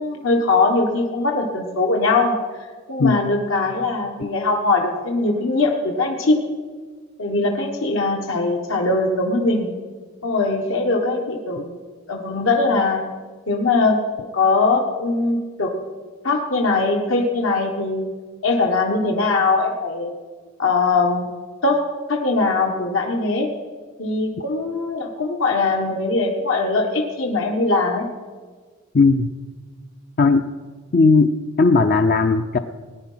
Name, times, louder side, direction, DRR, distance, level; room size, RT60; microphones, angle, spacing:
voice 1, 0.0-2.3 2.9-6.4 7.2-9.7 10.2-11.8 12.1-13.0 13.5-15.7 16.2-18.0 18.4-20.1 20.6-21.3 21.6-21.8 22.1-23.5 24.0-28.1, left 3 dB, 75° left, 1 dB, 1.4 m, -21 dB
voice 2, 28.9-29.3 30.2-30.5 30.9-31.3 31.6-32.6, left 3 dB, 45° left, 7 dB, 0.5 m, -16 dB
18.5 x 9.9 x 5.6 m, 1.5 s
head